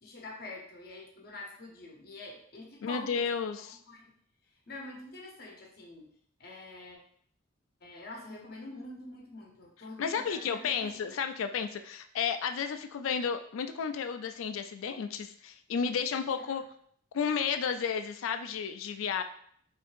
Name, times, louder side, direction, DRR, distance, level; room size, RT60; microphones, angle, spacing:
voice 1, 0.0-3.2 3.9-4.1 4.7-6.1 6.4-7.0 7.8-11.2 16.5-16.6, left 2 dB, 50° left, -1 dB, 0.9 m, -45 dB
voice 2, 2.8-3.8 10.0-16.6 17.1-19.2, left 6 dB, 85° left, 8 dB, 0.3 m, -32 dB
4.4 x 2.7 x 2.5 m, 0.62 s
head